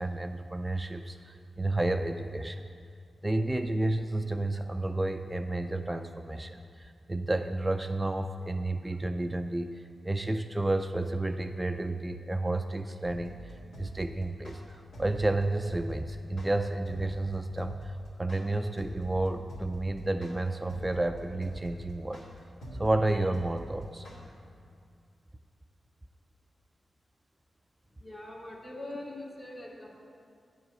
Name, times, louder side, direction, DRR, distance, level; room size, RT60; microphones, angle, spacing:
voice 1, 0.0-2.6 3.2-9.7 10.0-14.6 15.0-17.9 18.2-22.2 22.8-24.1, right 2 dB, 20° right, 7 dB, 0.4 m, -31 dB
sound 1, 13.1-24.2, equal, 90° left, 1.7 m, -44 dB
voice 2, 28.0-30.0, left 1 dB, 50° left, -4 dB, 1.6 m, -42 dB
9.3 x 4.7 x 6.4 m, 2.3 s
cardioid pair, 55°, 0 cm